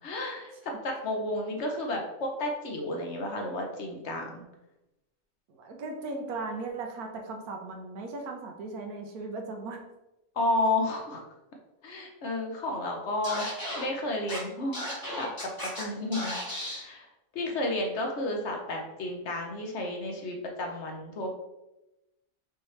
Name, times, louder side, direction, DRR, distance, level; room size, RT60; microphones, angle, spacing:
voice 1, 0.0-4.4 10.3-11.2 11.8-14.8 15.2-15.3 15.7-21.4, left 2 dB, 60° left, 2 dB, 0.9 m, -32 dB
voice 2, 5.5-9.9, right 3 dB, 85° right, 3 dB, 1.3 m, -37 dB
Scratching (performance technique), 13.2-13.8 14.3-14.4 14.7-15.8 16.1-16.8, equal, 15° left, 1.2 m, -35 dB
5.5 x 2.9 x 3.1 m, 0.95 s
omnidirectional pair, 1.5 m